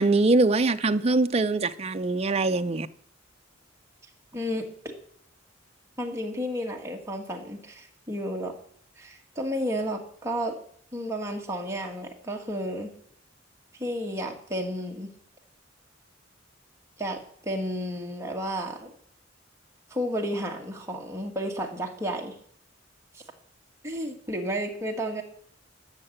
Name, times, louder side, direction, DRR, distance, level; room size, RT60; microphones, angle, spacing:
voice 1, 0.0-2.9, right 3 dB, 30° right, 0.5 m, -23 dB
voice 2, 4.3-4.9 6.0-8.5 9.0-10.5 10.9-12.9 13.7-15.1 17.0-18.9 19.9-22.4 23.1-23.2 23.8-25.2, equal, 15° right, 1.8 m, -32 dB
12.5 x 6.7 x 7.8 m
head